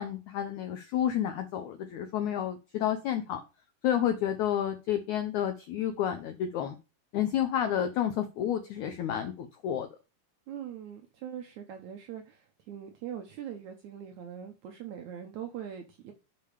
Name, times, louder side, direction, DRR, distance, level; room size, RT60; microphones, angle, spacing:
voice 1, 0.0-3.4 3.8-6.7 7.1-9.9, left 10 dB, 80° left, 1.7 m, -30 dB
voice 2, 10.5-16.1, right 9 dB, 70° right, 1.8 m, -42 dB
7.0 x 5.6 x 4.9 m
omnidirectional pair, 4.4 m